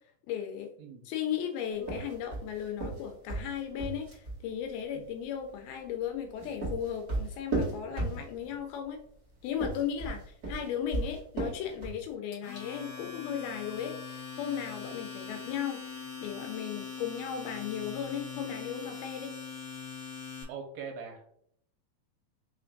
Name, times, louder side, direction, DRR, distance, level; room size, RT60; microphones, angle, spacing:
voice 1, 0.3-0.7 1.1-9.0 9.4-15.8 16.2-19.3, left 9 dB, 85° left, 5 dB, 2.2 m, -36 dB
sound 1, 1.8-4.4 6.1-8.6 9.5-12.1, right 2 dB, 60° right, 0.9 m, -34 dB
Domestic sounds home sounds, 12.3-20.4, left 5 dB, 65° left, 1.2 m, -42 dB
voice 2, 20.5-21.3, right 6 dB, 85° right, 4 dB, 2.6 m, -42 dB
5.6 x 3.4 x 2.5 m, 0.67 s
omnidirectional pair, 4.6 m